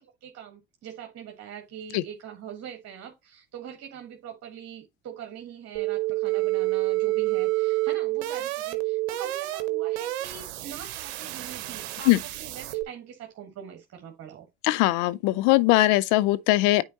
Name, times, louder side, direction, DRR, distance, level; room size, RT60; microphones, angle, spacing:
voice 1, 0.2-14.5, right 8 dB, 50° right, 1.6 m, -43 dB
sound 1, 5.8-12.8, right 18 dB, 75° right, 0.9 m, -28 dB
voice 2, 14.6-16.8, left 17 dB, 65° left, 0.6 m, -20 dB
9.3 x 4.3 x 2.8 m
hypercardioid pair, 65°, 32 cm